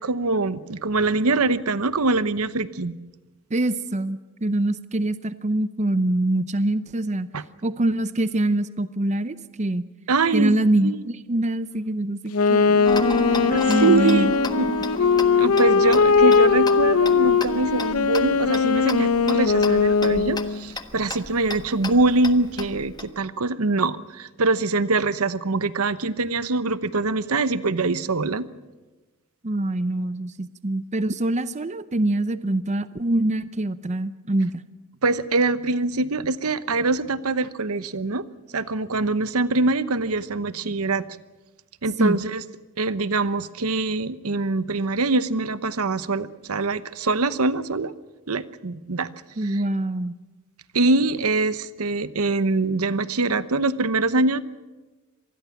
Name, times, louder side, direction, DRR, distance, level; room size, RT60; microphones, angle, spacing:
voice 1, 0.0-3.0 7.3-7.4 10.1-10.5 10.8-11.0 13.5-14.6 15.4-28.5 35.0-38.3 38.5-41.0 41.8-42.4 42.8-47.9 48.3-49.1 49.4-49.6 50.7-54.4, right 3 dB, 75° right, 14 dB, 1.0 m, -23 dB
voice 2, 3.5-7.3 7.6-9.8 10.3-12.9 13.2-13.4 13.7-14.7 29.4-34.6 42.0-42.2 49.4-50.1, right 1 dB, 30° right, 13 dB, 0.7 m, -24 dB
Wind instrument woodwind instrument, 12.3-20.6, left 5 dB, 70° left, 0.8 m, -20 dB
Tick-tock, 12.9-23.1, left 1 dB, 20° left, 1.3 m, -33 dB
25.5 x 20.0 x 7.2 m, 1.2 s
head